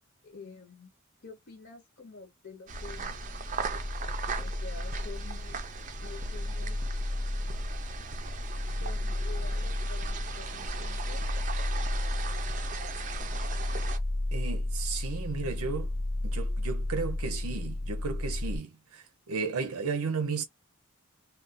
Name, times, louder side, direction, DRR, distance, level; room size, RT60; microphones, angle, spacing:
voice 1, 0.2-0.9 1.2-3.4 4.4-5.6 6.0-7.0 8.7-11.3, left 3 dB, 50° left, 0.8 m, -48 dB
sound 1, 2.7-18.6, left 1 dB, 25° left, 0.5 m, -33 dB
sound 2, 2.7-14.0, right 4 dB, 35° right, 0.5 m, -38 dB
voice 2, 14.3-15.9 16.2-20.4, right 5 dB, 80° right, 0.6 m, -34 dB
2.5 x 2.3 x 3.6 m
head